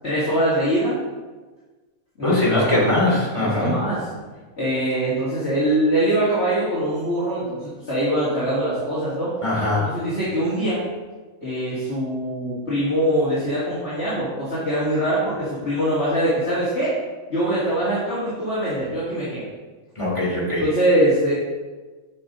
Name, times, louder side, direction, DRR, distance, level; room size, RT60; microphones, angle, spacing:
voice 1, 0.0-1.0 2.2-3.0 3.4-4.1 4.6-9.3 9.9-10.8 11.4-16.9 17.3-19.5 20.6-21.3, right 1 dB, 50° left, -10 dB, 2.6 m, -23 dB
voice 2, 2.2-3.7 9.4-10.0 19.9-20.6, left 1 dB, 20° left, -5 dB, 3.0 m, -21 dB
11.5 x 5.9 x 4.0 m, 1.3 s
omnidirectional pair, 1.4 m